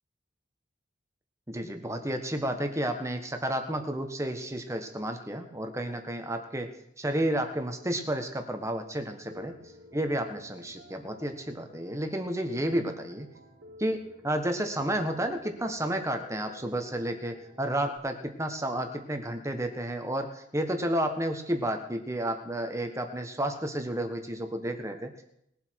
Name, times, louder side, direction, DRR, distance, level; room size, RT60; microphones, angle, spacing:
voice 1, 1.5-6.7 7.0-9.5 9.9-13.3 13.8-25.2, right 1 dB, 15° right, 6 dB, 1.4 m, -31 dB
Piano, 9.3-18.0, equal, 80° right, 2.7 m, -53 dB
20.5 x 8.0 x 4.7 m, 0.73 s
head